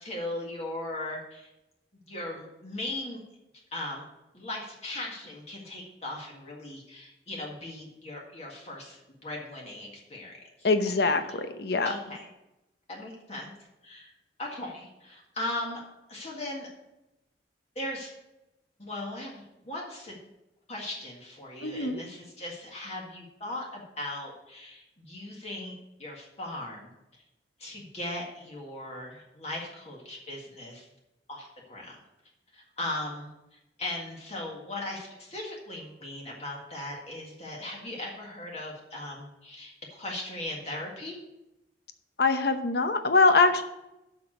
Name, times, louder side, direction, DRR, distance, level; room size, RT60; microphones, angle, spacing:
voice 1, 0.0-1.5 2.1-3.2 3.7-4.1 4.3-10.3 10.6-11.0 11.3-11.4 11.8-12.3 12.9-13.5 13.8-14.1 14.4-15.8 16.1-16.7 17.8-18.1 18.8-20.2 20.7-26.9 27.6-30.9 31.3-32.0 32.5-33.3 33.8-41.2, left 1 dB, 35° left, -2 dB, 1.7 m, -38 dB
voice 2, 10.6-11.9 21.6-22.0 42.2-43.6, left 3 dB, 60° left, 8 dB, 0.9 m, -23 dB
7.5 x 6.0 x 7.6 m, 0.92 s
head